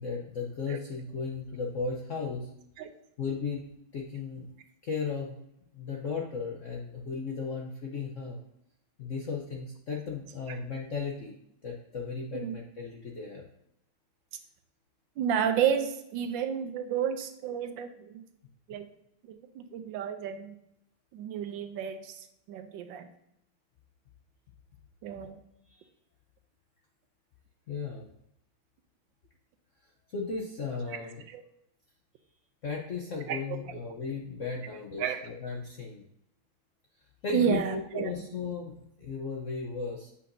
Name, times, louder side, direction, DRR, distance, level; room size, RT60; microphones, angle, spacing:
voice 1, 0.0-2.5 3.2-3.6 3.9-4.5 4.8-5.4 5.7-8.4 9.0-11.3 11.6-13.4 25.7-25.9 27.7-28.1 30.1-31.2 32.6-36.0 37.2-40.1, left 5 dB, 65° left, 0 dB, 0.8 m, -35 dB
voice 2, 15.2-18.2 18.7-18.9 19.3-20.6 21.1-23.1 25.0-25.4 30.9-31.0 31.3-31.4 33.3-33.8 35.0-35.3 37.3-38.1, right 8 dB, 75° right, 9 dB, 1.2 m, -31 dB
8.2 x 5.5 x 2.6 m, 0.79 s
omnidirectional pair, 2.2 m